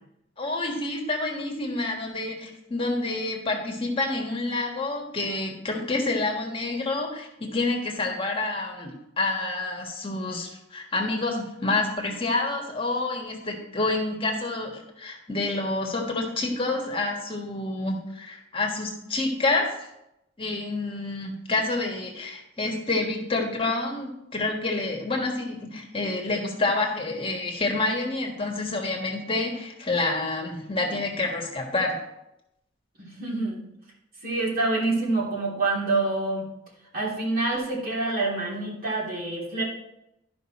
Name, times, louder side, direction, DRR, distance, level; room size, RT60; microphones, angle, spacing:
voice 1, 0.4-19.9 20.4-32.0, left 2 dB, 30° left, 0 dB, 1.4 m, -28 dB
voice 2, 33.0-33.6 34.2-36.5 36.9-39.6, right 2 dB, 50° right, -5 dB, 3.2 m, -27 dB
12.0 x 5.4 x 4.2 m, 0.85 s
head